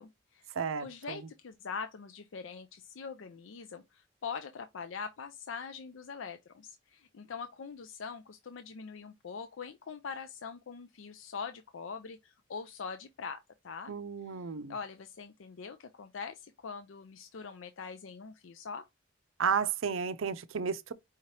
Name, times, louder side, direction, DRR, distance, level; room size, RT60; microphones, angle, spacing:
voice 1, 0.0-0.5 0.8-13.9 14.3-14.4 14.7-18.8, left 5 dB, 80° left, 0.5 m, -43 dB
voice 2, 0.5-1.2 13.9-14.7 19.4-20.9, right 6 dB, 90° right, 0.5 m, -32 dB
4.9 x 2.8 x 3.2 m
head